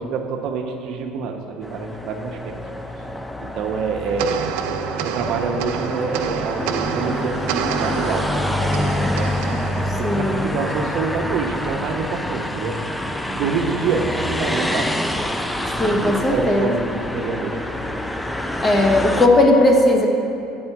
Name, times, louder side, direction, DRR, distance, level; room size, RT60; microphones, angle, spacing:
voice 1, 0.0-2.5 3.4-4.4 5.0-8.3 8.6-9.4 9.9-12.8 13.3-14.9 15.9-17.6, right 5 dB, 60° right, 3 dB, 0.7 m, -26 dB
sound 1, 1.6-19.3, left 1 dB, 5° left, 0.3 m, -26 dB
sound 2, 4.2-10.8, right 10 dB, 90° right, 0.3 m, -29 dB
voice 2, 9.9-10.5 15.8-16.7 18.6-20.1, left 1 dB, 20° left, 0 dB, 1.0 m, -17 dB
8.6 x 4.3 x 5.9 m, 2.6 s
cardioid pair, 135°, 0 cm